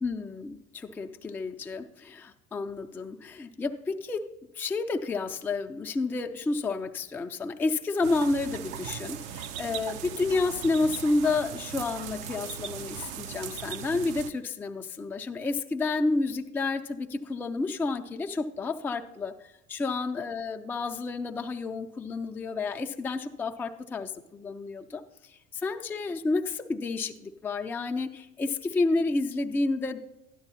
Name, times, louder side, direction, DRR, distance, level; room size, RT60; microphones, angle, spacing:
voice 1, 0.0-4.3 4.5-19.3 19.7-25.0 25.3-30.0, left 3 dB, 5° left, 4 dB, 0.4 m, -30 dB
sound 1, 8.0-14.3, right 9 dB, 60° right, 0.7 m, -39 dB
12.5 x 9.9 x 2.8 m, 0.92 s
hypercardioid pair, 60°, 45 cm